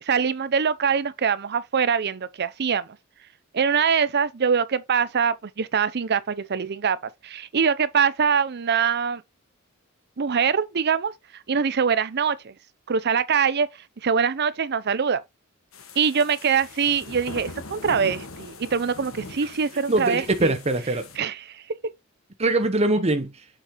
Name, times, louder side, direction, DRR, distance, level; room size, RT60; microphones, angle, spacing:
voice 1, 0.0-2.9 3.5-9.2 10.2-12.5 12.9-13.7 14.0-15.2 16.0-20.5 21.2-21.6, right 6 dB, 50° right, 0.6 m, -23 dB
sound 1, 15.7-21.2, left 3 dB, 70° left, 1.5 m, -41 dB
voice 2, 19.9-21.1 22.4-23.5, right 2 dB, 30° right, 0.9 m, -23 dB
7.4 x 5.2 x 3.0 m
head